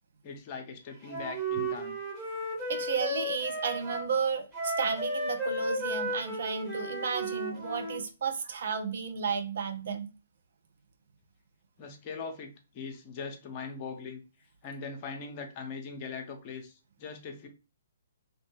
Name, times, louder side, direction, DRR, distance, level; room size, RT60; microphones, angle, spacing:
voice 1, 0.2-2.0 11.8-14.2 14.6-17.5, left 5 dB, 30° left, 0.7 m, -41 dB
Wind instrument woodwind instrument, 1.1-4.1 4.5-8.0, right 1 dB, 15° right, 1.2 m, -34 dB
voice 2, 2.7-10.1, right 6 dB, 55° right, 0.6 m, -33 dB
3.0 x 3.0 x 2.9 m
figure-of-eight pair, 125°, 0 cm